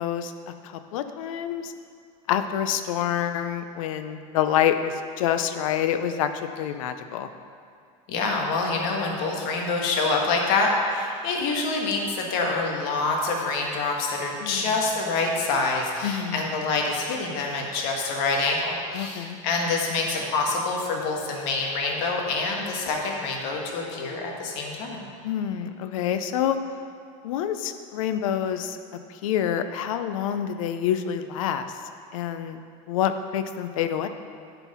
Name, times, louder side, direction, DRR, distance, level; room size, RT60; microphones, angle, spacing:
voice 1, 0.0-1.7 2.3-7.3 14.4-14.8 16.0-16.5 18.9-19.4 25.2-26.6 27.2-28.8 29.1-31.7 32.1-32.6 32.9-34.1, left 9 dB, 90° left, 9 dB, 0.6 m, -27 dB
voice 2, 8.1-25.1, left 3 dB, 65° left, 0 dB, 1.6 m, -26 dB
11.0 x 4.6 x 5.5 m, 2.3 s
supercardioid pair, 135°, 17 cm